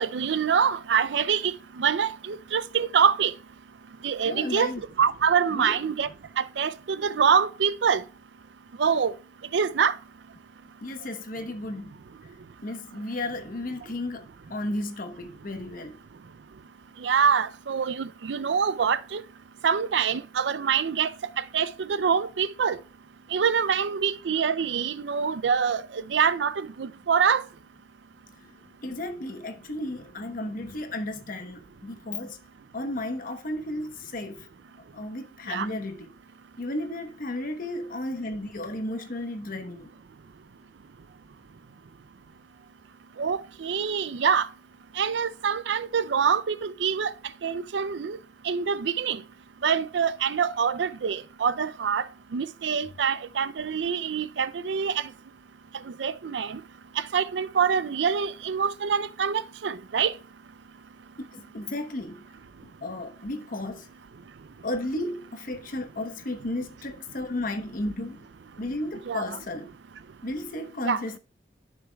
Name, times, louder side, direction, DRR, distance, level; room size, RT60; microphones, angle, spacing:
voice 1, 0.0-3.3 4.0-4.7 5.0-6.1 6.4-8.0 8.8-9.1 9.5-9.9 17.0-19.2 19.6-21.1 21.4-22.8 23.3-27.4 35.5-35.7 43.2-44.5 45.0-47.1 47.4-48.2 48.4-49.2 49.6-52.0 52.3-55.1 56.0-56.6 57.1-60.1 69.1-69.4 70.9-71.0, right 6 dB, 85° right, 0.5 m, -25 dB
voice 2, 4.2-4.8 5.5-5.8 10.8-11.9 12.6-16.0 28.4-28.5 28.8-32.4 32.7-34.5 34.9-36.1 36.6-39.9 61.3-62.2 62.8-63.9 64.6-68.2 68.6-69.7 70.2-71.2, left 1 dB, 50° left, 1.0 m, -33 dB
11.0 x 6.4 x 2.3 m
head